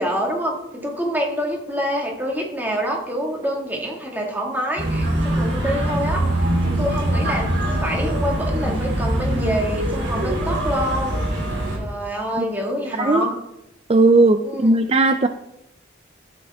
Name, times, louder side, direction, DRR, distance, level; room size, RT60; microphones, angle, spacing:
voice 1, 0.0-6.3 6.6-11.3 11.8-13.4 14.4-14.8, equal, 10° right, -1 dB, 1.8 m, -26 dB
sound 1, 4.8-11.8, right 1 dB, 70° right, 3.6 m, -23 dB
voice 2, 13.9-15.3, right 2 dB, 30° right, 9 dB, 0.4 m, -16 dB
12.0 x 8.8 x 3.5 m, 0.87 s
head